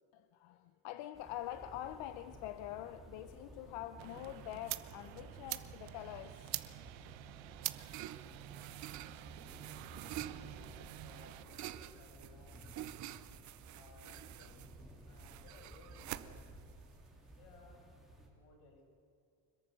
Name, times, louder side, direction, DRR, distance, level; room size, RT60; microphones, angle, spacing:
voice 1, 0.1-6.6, left 13 dB, 65° left, 0.8 m, -45 dB
sound 1, 1.1-18.3, right 1 dB, ahead, 3.2 m, -55 dB
sound 2, 4.0-11.4, right 17 dB, 70° right, 1.0 m, -46 dB
sound 3, 7.2-17.7, right 13 dB, 40° right, 0.6 m, -49 dB
voice 2, 10.1-13.0 13.7-14.7 15.1-16.5 17.3-17.8 18.3-18.8, left 3 dB, 85° left, 6.5 m, -61 dB
25.5 x 22.0 x 6.3 m
cardioid pair, 175°, 47 cm